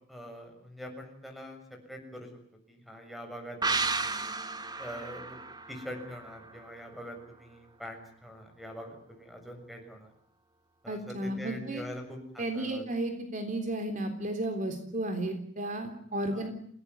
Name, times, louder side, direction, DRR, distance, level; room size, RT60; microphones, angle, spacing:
voice 1, 0.1-2.3 2.7-4.0 4.8-5.4 5.7-10.1 10.8-12.8 16.3-16.5, equal, ahead, 5 dB, 7.0 m, -44 dB
sound 1, 3.6-7.1 7.4-7.5, right 3 dB, 20° right, 1.5 m, -34 dB
voice 2, 10.9-11.8 12.4-16.5, right 1 dB, 45° right, 6 dB, 3.6 m, -33 dB
29.0 x 17.5 x 9.7 m, 0.63 s
head